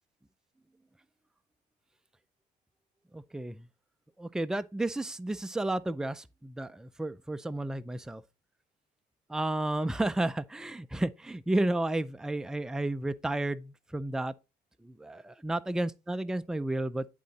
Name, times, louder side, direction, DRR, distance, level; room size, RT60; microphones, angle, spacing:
voice 1, 3.1-3.7 4.2-8.2 9.3-14.3 14.8-17.1, right 1 dB, 5° right, 0.4 m, -32 dB
10.5 x 3.8 x 4.1 m
cardioid pair, 110°, 17 cm